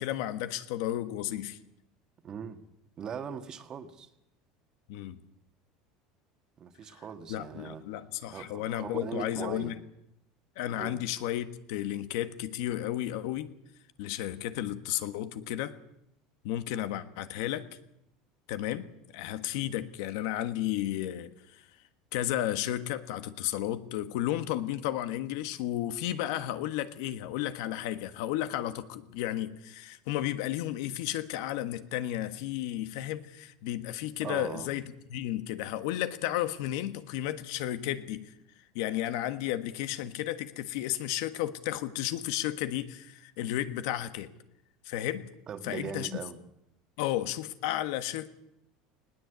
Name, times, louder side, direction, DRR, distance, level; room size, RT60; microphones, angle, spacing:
voice 1, 0.0-1.6 4.9-5.2 7.3-9.7 10.5-13.5 14.0-15.8 16.4-17.7 18.5-18.9 19.1-21.7 22.1-34.8 35.1-38.3 38.7-44.3 44.8-45.3 45.6-46.1 47.0-48.3, left 13 dB, 75° left, 1.5 m, -33 dB
voice 2, 2.2-2.6 3.0-4.1 6.6-7.8 8.3-9.7 10.8-11.0 34.2-34.7 45.5-46.4, right 7 dB, 30° right, 1.7 m, -40 dB
20.0 x 18.5 x 8.2 m
cardioid pair, 145°, 2 cm